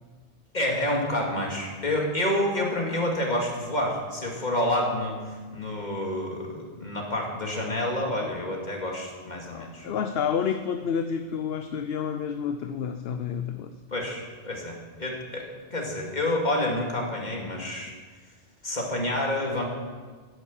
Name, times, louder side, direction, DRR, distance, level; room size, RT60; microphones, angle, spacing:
voice 1, 0.5-5.2 5.5-9.9 13.9-17.9 18.6-19.6, left 1 dB, 40° left, -1 dB, 2.4 m, -28 dB
voice 2, 9.5-13.7, left 7 dB, 65° left, 8 dB, 0.8 m, -29 dB
11.0 x 9.2 x 7.1 m, 1.5 s
omnidirectional pair, 1.2 m